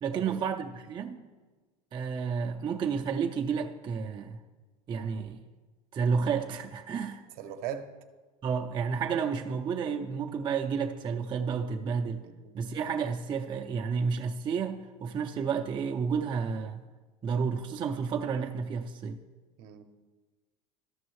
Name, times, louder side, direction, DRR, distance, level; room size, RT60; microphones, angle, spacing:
voice 1, 0.0-1.3 1.9-4.4 4.9-5.4 5.9-7.2 8.4-12.2 12.5-16.8 17.2-19.2, right 6 dB, 25° right, 0.5 m, -31 dB
voice 2, 7.4-7.9 12.2-12.5 19.6-19.8, right 9 dB, 55° right, 0.7 m, -39 dB
13.0 x 6.1 x 3.1 m
supercardioid pair, 115°, 19 cm